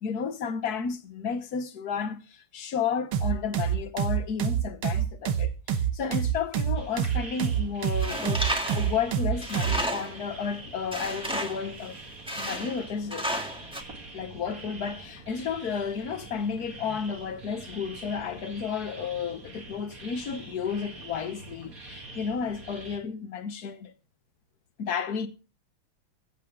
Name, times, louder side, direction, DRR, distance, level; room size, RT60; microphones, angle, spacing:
voice 1, 0.0-8.5 8.7-12.0 12.4-13.3 14.1-23.9 24.8-25.3, left 6 dB, 55° left, 1.4 m, -32 dB
sound 1, 3.1-9.8, right 8 dB, 75° right, 2.0 m, -27 dB
sound 2, 6.7-23.0, right 2 dB, 40° right, 2.6 m, -45 dB
Tools, 8.0-10.3 10.9-11.7 12.3-12.8 13.1-13.8, equal, 5° right, 1.5 m, -32 dB
22.5 x 8.3 x 3.7 m
omnidirectional pair, 2.4 m